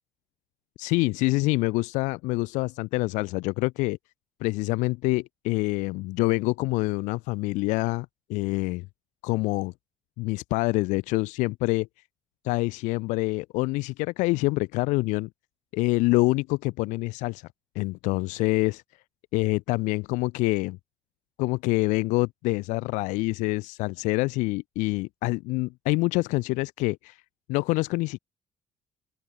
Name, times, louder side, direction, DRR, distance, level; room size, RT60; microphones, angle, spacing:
voice 1, 0.8-4.0 4.4-8.9 9.2-9.7 10.2-11.9 12.4-15.3 15.7-17.4 17.7-18.8 19.3-20.8 21.4-27.2 27.5-28.2, left 23 dB, 80° left, 1.3 m, -26 dB
open air
supercardioid pair, 60°, 12 cm